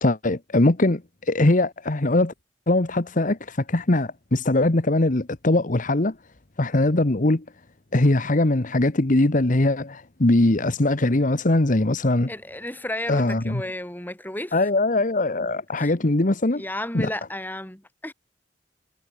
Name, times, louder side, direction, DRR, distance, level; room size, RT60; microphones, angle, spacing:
voice 1, 0.0-2.3 2.7-6.1 6.6-7.4 7.9-12.3 13.1-13.6 14.5-16.6 16.9-17.1, left 2 dB, 50° left, 1.3 m, -21 dB
voice 2, 12.3-14.6 15.8-15.9 16.6-18.1, left 1 dB, 10° left, 3.3 m, -33 dB
head